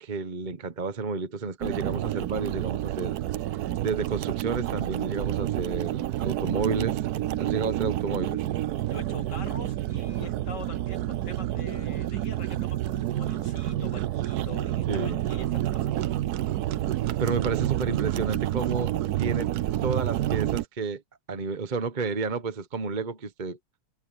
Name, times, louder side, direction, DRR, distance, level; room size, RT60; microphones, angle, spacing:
voice 1, 0.0-3.2 3.8-7.1 7.4-8.4 14.9-15.2 17.2-19.5 19.8-21.0 21.3-23.6, right 4 dB, 35° right, 0.9 m, -31 dB
sound 1, 1.6-20.6, right 13 dB, 70° right, 1.1 m, -29 dB
voice 2, 8.9-16.3 16.9-17.0, left 4 dB, 85° left, 3.2 m, -44 dB
omnidirectional pair, 1.8 m